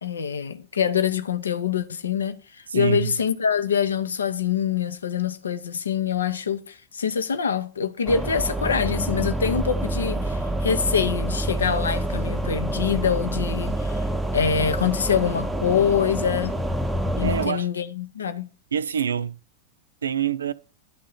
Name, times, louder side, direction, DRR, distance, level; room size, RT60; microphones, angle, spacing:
voice 1, 0.0-14.0 14.3-16.6 17.2-18.5, left 7 dB, 70° left, 0.7 m, -25 dB
voice 2, 2.7-3.2 17.2-17.7 18.7-19.4 20.0-20.5, right 8 dB, 70° right, 0.4 m, -25 dB
sound 1, 8.1-17.5, right 1 dB, 5° right, 0.8 m, -27 dB
11.0 x 3.7 x 5.5 m
figure-of-eight pair, 90°, 0 cm